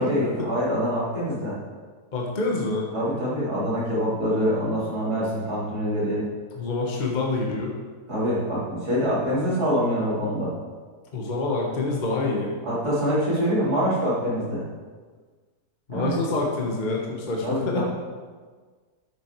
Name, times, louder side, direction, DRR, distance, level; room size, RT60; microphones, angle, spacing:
voice 1, 0.0-1.6 2.9-6.2 8.1-10.5 12.6-14.6 15.9-16.2 17.4-17.8, equal, 70° right, -8 dB, 3.4 m, -25 dB
voice 2, 2.1-2.9 6.5-7.8 11.1-12.5 15.9-17.8, left 3 dB, 30° left, -1 dB, 1.1 m, -26 dB
8.8 x 6.8 x 4.6 m, 1.5 s
omnidirectional pair, 1.7 m